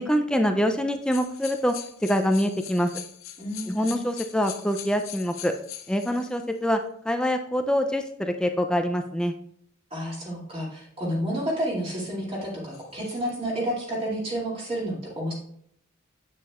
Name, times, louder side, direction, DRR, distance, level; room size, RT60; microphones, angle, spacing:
voice 1, 0.0-2.9 3.7-5.5 5.9-9.3, equal, 5° left, 6 dB, 0.4 m, -25 dB
sound 1, 1.0-6.5 7.2-7.3 12.7-13.3, left 11 dB, 70° left, 0.6 m, -42 dB
voice 2, 3.4-4.0 9.9-15.3, equal, 25° right, -4 dB, 2.5 m, -30 dB
8.4 x 6.8 x 2.4 m, 0.70 s
head